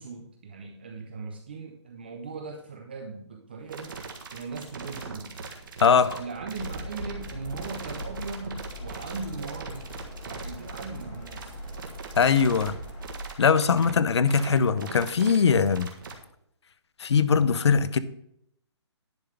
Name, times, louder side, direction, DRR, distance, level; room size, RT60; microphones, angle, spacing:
voice 1, 0.0-4.0 4.3-5.4 5.9-9.9 10.2-11.6, right 4 dB, 20° right, 3 dB, 0.5 m, -39 dB
sound 1, 3.7-16.1, right 4 dB, 45° right, 1.5 m, -40 dB
sound 2, 6.5-13.3, left 1 dB, 25° left, 2.0 m, -41 dB
sound 3, 7.1-13.1, left 1 dB, 10° left, 1.5 m, -52 dB
voice 2, 12.2-12.7 13.4-15.9 17.0-18.0, left 6 dB, 70° left, 14 dB, 0.7 m, -21 dB
10.5 x 3.8 x 7.0 m, 0.75 s
hypercardioid pair, 175°, 15 cm